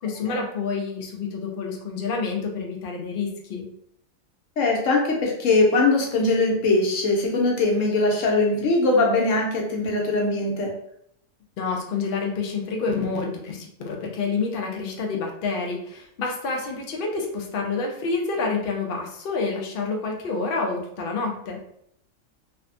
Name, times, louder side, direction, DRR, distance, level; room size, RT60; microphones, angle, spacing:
voice 1, 0.0-3.7 11.6-21.6, left 4 dB, 60° left, 0 dB, 0.6 m, -28 dB
voice 2, 4.6-10.7, left 2 dB, 75° left, 0 dB, 1.0 m, -21 dB
3.3 x 2.1 x 2.5 m, 0.71 s
omnidirectional pair, 1.4 m